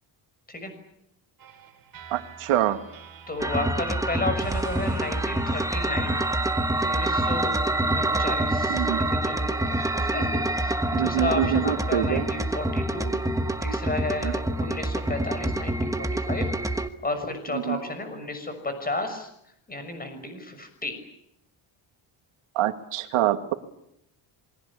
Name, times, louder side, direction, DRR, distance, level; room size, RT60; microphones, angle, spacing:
sound 1, 1.4-7.6, right 5 dB, 40° right, 5.0 m, -45 dB
voice 1, 2.1-2.8 8.7-9.0 10.9-12.3 14.2-14.3 17.5-17.8 22.5-23.5, right 12 dB, 85° right, 8 dB, 2.3 m, -25 dB
voice 2, 3.3-6.2 6.8-7.5 8.0-13.1 13.6-19.3 19.7-21.0, left 2 dB, 15° left, 8 dB, 6.4 m, -33 dB
sound 2, 3.4-16.9, right 1 dB, 5° right, 1.2 m, -26 dB
27.5 x 23.0 x 8.6 m, 0.76 s
cardioid pair, 150°, 50 cm